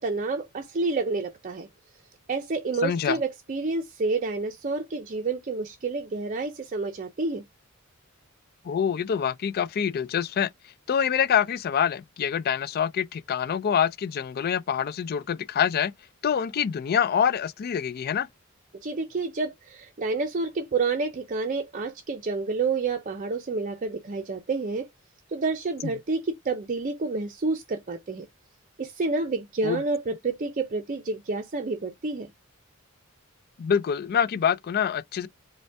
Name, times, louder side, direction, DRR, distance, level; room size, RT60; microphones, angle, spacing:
voice 1, 0.0-1.7 2.3-7.4 18.7-24.9 25.3-28.3 28.8-32.3, right 3 dB, 40° right, 0.5 m, -29 dB
voice 2, 2.8-3.2 8.6-10.5 10.9-15.9 16.2-18.3 29.6-29.8 33.6-35.3, left 8 dB, 45° left, 0.3 m, -25 dB
5.1 x 2.2 x 3.4 m
head